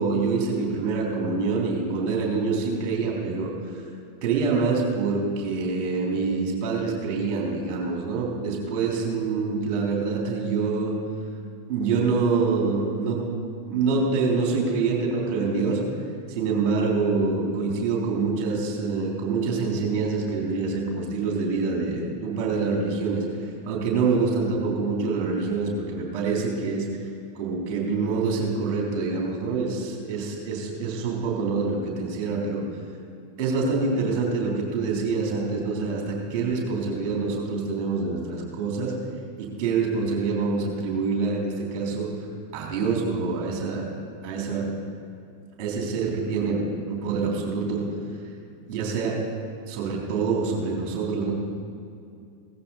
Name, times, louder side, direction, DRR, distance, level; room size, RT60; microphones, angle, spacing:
voice 1, 0.0-3.7 4.2-11.0 11.7-13.2 13.6-15.8 16.3-23.2 23.6-26.9 27.4-32.6 33.4-38.9 39.4-42.1 42.5-43.9 44.2-44.7 45.6-47.9 48.7-49.2 49.7-51.3, right 4 dB, 40° right, -1 dB, 3.6 m, -26 dB
17.0 x 14.0 x 4.2 m, 2.4 s
figure-of-eight pair, 90°, 0 cm